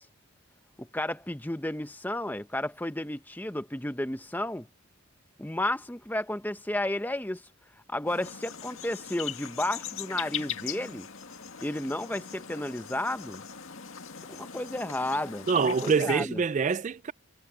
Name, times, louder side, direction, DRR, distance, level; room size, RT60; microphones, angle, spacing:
voice 1, 0.8-4.7 5.4-7.4 7.9-11.1 11.6-13.4 14.3-16.4, left 1 dB, 10° left, 0.8 m, -32 dB
sound 1, 8.1-16.2, left 8 dB, 75° left, 2.0 m, -40 dB
voice 2, 15.5-17.1, right 5 dB, 35° right, 0.3 m, -25 dB
head